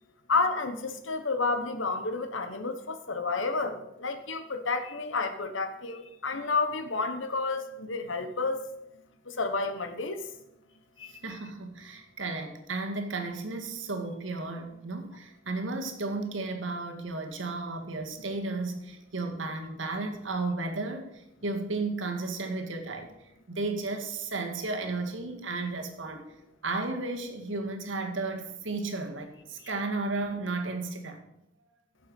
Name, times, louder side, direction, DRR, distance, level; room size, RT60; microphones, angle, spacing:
voice 1, 0.3-8.6 9.3-10.2 11.0-11.2, left 3 dB, 90° left, 1.2 m, -30 dB
voice 2, 11.2-23.1 23.5-26.2 26.6-31.2, right 3 dB, 85° right, 1.9 m, -33 dB
16.0 x 7.0 x 5.4 m
head